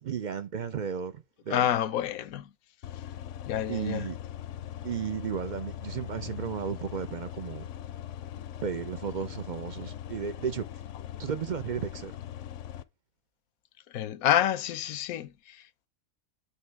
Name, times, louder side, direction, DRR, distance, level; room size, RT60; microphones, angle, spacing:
voice 1, 0.0-1.7 3.7-4.2 4.8-7.7 8.6-10.6 11.2-12.1, right 7 dB, 60° right, 0.4 m, -34 dB
voice 2, 1.5-2.5 3.4-4.1 13.9-15.9, left 11 dB, 85° left, 1.1 m, -28 dB
sound 1, 2.8-12.8, left 11 dB, 70° left, 0.8 m, -41 dB
8.3 x 3.1 x 4.6 m
omnidirectional pair, 1.4 m